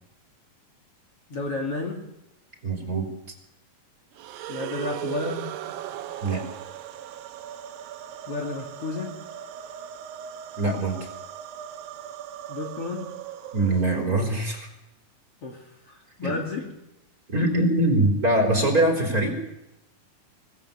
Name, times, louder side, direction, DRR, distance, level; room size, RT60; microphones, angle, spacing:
voice 1, 1.3-2.0 4.5-5.5 8.3-9.1 12.5-13.1 15.4-16.6, left 3 dB, 45° left, 0 dB, 3.1 m, -32 dB
voice 2, 2.6-3.1 6.2-6.4 10.6-11.0 13.5-14.7 16.2-16.3 17.3-19.3, right 1 dB, 25° right, 1 dB, 4.3 m, -23 dB
sound 1, 4.1-14.4, right 11 dB, 90° right, 2.8 m, -38 dB
24.5 x 18.0 x 7.0 m, 0.91 s
omnidirectional pair, 4.0 m